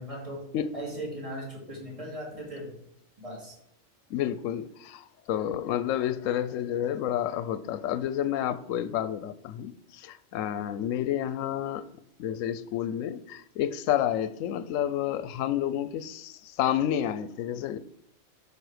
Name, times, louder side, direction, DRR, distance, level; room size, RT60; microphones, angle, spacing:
voice 1, 0.0-0.4 0.7-2.7 3.2-3.6, right 1 dB, 25° right, -3 dB, 2.9 m, -38 dB
voice 2, 4.1-11.8 12.2-17.8, left 10 dB, 80° left, 13 dB, 0.9 m, -30 dB
12.5 x 5.1 x 4.9 m, 0.73 s
omnidirectional pair, 1.3 m